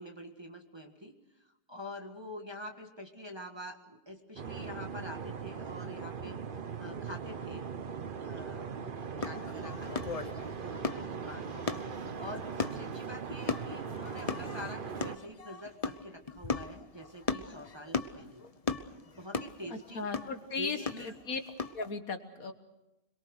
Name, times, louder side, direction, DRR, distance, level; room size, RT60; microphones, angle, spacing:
voice 1, 0.0-6.4 6.8-7.7 8.2-8.8 9.2-10.2 10.6-11.7 12.2-18.4 19.1-20.1 20.6-21.1, left 1 dB, 15° right, 2 dB, 1.8 m, -46 dB
sound 1, 4.4-15.2, right 6 dB, 40° right, 0.8 m, -40 dB
sound 2, 9.2-21.9, left 4 dB, 35° left, 0.6 m, -38 dB
voice 2, 19.7-21.4 21.7-22.5, left 4 dB, 55° left, 7 dB, 1.8 m, -37 dB
26.0 x 22.5 x 6.6 m, 0.94 s
omnidirectional pair, 1.8 m